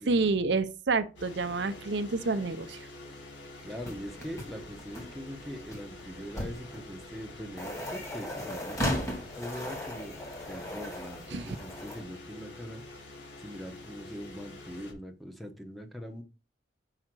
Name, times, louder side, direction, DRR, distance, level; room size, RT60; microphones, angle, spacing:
voice 1, 0.1-2.9 11.3-11.6, right 3 dB, 70° right, 0.6 m, -29 dB
sound 1, 1.2-14.9, left 2 dB, 85° left, 3.0 m, -47 dB
voice 2, 3.6-10.2 10.5-12.8 13.4-16.2, equal, ahead, 1.0 m, -42 dB
sound 2, 3.8-12.0, equal, 15° left, 1.9 m, -38 dB
6.4 x 4.9 x 6.1 m
head